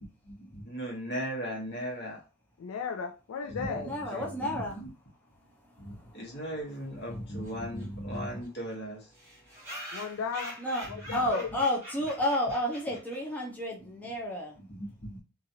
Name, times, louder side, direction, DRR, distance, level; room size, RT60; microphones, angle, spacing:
voice 1, 0.2-2.2 3.4-4.9 5.8-9.1 11.1-11.3 14.6-15.2, equal, 55° left, 1.2 m, -37 dB
voice 2, 2.6-3.8 9.9-10.5 10.9-11.5, left 6 dB, 75° left, 0.3 m, -35 dB
voice 3, 3.8-4.8 5.9-6.2 10.6-14.6, left 1 dB, 10° left, 0.5 m, -31 dB
sound 1, 7.4-7.5 7.8-7.9 8.1-8.2 8.4-8.5 9.1-13.4, equal, 10° right, 1.2 m, -44 dB
3.0 x 2.4 x 2.6 m
head